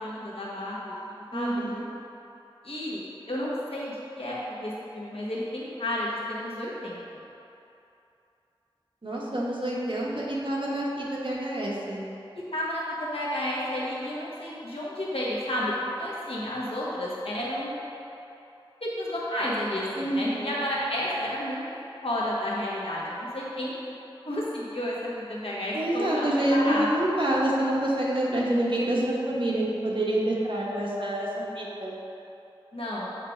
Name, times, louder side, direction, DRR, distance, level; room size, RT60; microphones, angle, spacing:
voice 1, 0.0-1.6 2.6-7.2 12.3-17.7 18.8-21.6 22.0-23.8 24.2-26.9 32.7-33.1, left 1 dB, 80° left, -6 dB, 1.3 m, -31 dB
voice 2, 1.3-1.8 9.0-12.0 20.0-20.5 25.7-32.0, right 1 dB, 60° right, -5 dB, 1.3 m, -27 dB
8.4 x 3.3 x 5.1 m, 2.8 s
wide cardioid pair, 50°, 10 cm